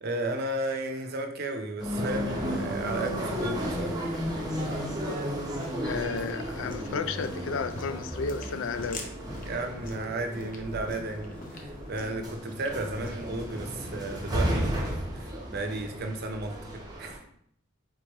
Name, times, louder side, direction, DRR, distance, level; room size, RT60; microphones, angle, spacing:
voice 1, 0.0-4.0 9.4-17.2, right 2 dB, 50° right, 5 dB, 0.6 m, -34 dB
sound 1, 1.8-17.2, equal, 20° right, 0.8 m, -34 dB
sound 2, 2.4-13.9, left 2 dB, 40° left, 0.7 m, -47 dB
voice 2, 5.8-9.1, left 5 dB, 65° left, 11 dB, 0.4 m, -33 dB
3.5 x 3.3 x 4.3 m, 0.66 s
head